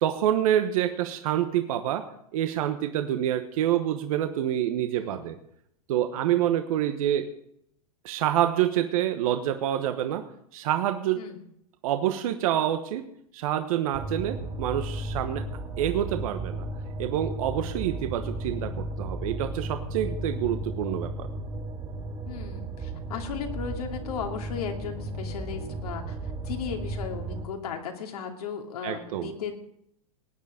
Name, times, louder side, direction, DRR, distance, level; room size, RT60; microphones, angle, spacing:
voice 1, 0.0-2.0 2.3-5.4 5.9-7.3 8.0-10.2 10.5-11.2 11.8-13.0 13.3-15.4 15.8-16.7 17.0-18.7 19.0-21.3 28.8-29.3, right 11 dB, 65° right, 7 dB, 1.2 m, -27 dB
voice 2, 4.9-5.3 11.1-11.4 22.2-29.6, left 7 dB, 75° left, 2 dB, 2.6 m, -36 dB
sound 1, 13.9-27.5, right 1 dB, 25° right, 2.4 m, -34 dB
19.0 x 9.5 x 5.1 m, 0.72 s
hypercardioid pair, 115°, 19 cm